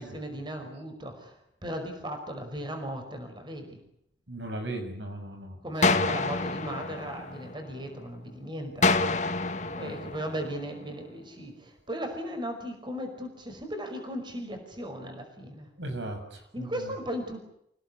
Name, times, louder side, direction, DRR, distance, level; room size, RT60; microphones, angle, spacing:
voice 1, 0.0-3.8 5.6-8.9 9.5-15.7 16.5-17.4, equal, 25° right, 4 dB, 5.3 m, -37 dB
voice 2, 4.3-5.6 5.9-6.1 9.8-9.9 15.8-16.9, right 1 dB, 85° right, 5 dB, 7.5 m, -37 dB
sound 1, 5.8-7.9 8.8-10.9, left 3 dB, 40° left, 1.7 m, -28 dB
28.5 x 17.5 x 9.8 m, 0.74 s
head